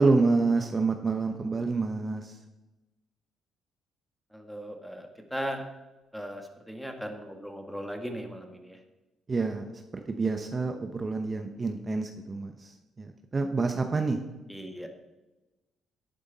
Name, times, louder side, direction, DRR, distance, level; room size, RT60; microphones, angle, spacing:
voice 1, 0.0-2.4 9.3-14.2, right 3 dB, 30° right, 5 dB, 0.9 m, -28 dB
voice 2, 4.3-5.6 6.1-8.8 14.5-14.9, equal, ahead, 4 dB, 1.7 m, -38 dB
11.5 x 9.4 x 4.1 m, 1.1 s
cardioid pair, 90°, 0 cm